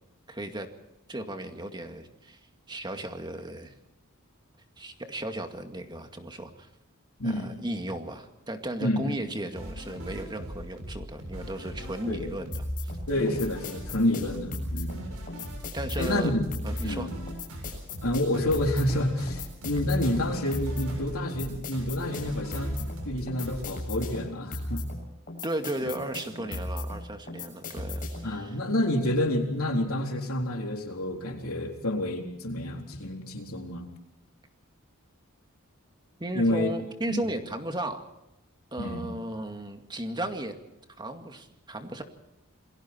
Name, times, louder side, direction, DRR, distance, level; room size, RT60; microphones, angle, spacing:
voice 1, 0.3-0.7 1.1-2.4 2.7-3.7 4.8-6.7 7.2-12.9 15.7-16.3 16.6-17.1 25.4-28.6 36.2-38.1 38.7-40.5 41.0-42.0, right 1 dB, 20° right, 6 dB, 2.2 m, -35 dB
voice 2, 7.2-7.5 8.8-9.1 12.1-12.3 13.1-15.0 16.0-16.4 16.8-17.1 18.0-24.8 25.8-25.9 26.4-26.5 28.2-33.9 36.3-36.7 37.1-37.2 38.8-39.1, left 1 dB, 70° left, 2 dB, 4.0 m, -29 dB
sound 1, 9.6-23.7, equal, 90° right, 7.5 m, -40 dB
sound 2, 12.5-28.4, left 1 dB, 40° left, 7.5 m, -36 dB
28.5 x 21.5 x 4.5 m, 0.86 s
head